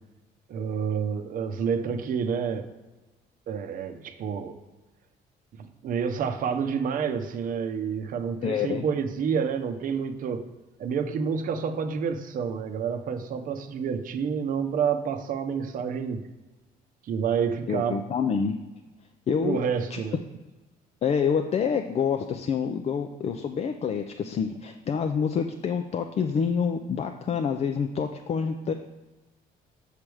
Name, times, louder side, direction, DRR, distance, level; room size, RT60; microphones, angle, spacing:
voice 1, 0.5-2.7 3.5-4.6 5.5-10.5 10.8-16.3 17.1-18.0 19.4-20.2, right 6 dB, 55° right, 7 dB, 0.8 m, -29 dB
voice 2, 8.4-8.8 17.7-18.6 19.3-19.6 19.9-20.0 21.0-28.7, left 6 dB, 40° left, 6 dB, 0.5 m, -27 dB
7.3 x 3.4 x 6.2 m, 1.1 s
cardioid pair, 110°, 17 cm